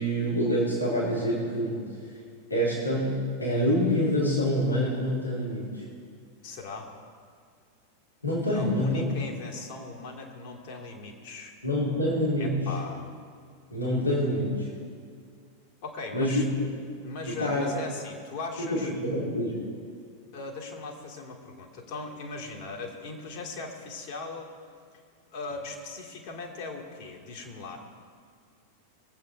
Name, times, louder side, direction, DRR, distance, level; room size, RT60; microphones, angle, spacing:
voice 1, 0.0-1.8 2.5-3.1 3.4-5.8 8.2-9.0 11.6-12.6 13.7-14.7 16.1-16.4 17.3-17.7 18.6-19.6, equal, 85° left, -7 dB, 3.8 m, -26 dB
voice 2, 6.4-6.9 8.5-11.5 12.4-13.1 15.8-16.5 17.0-18.9 20.3-24.5 25.3-27.8, left 3 dB, 45° left, 0 dB, 2.5 m, -39 dB
21.5 x 8.5 x 4.6 m, 2.2 s
figure-of-eight pair, 90°, 0 cm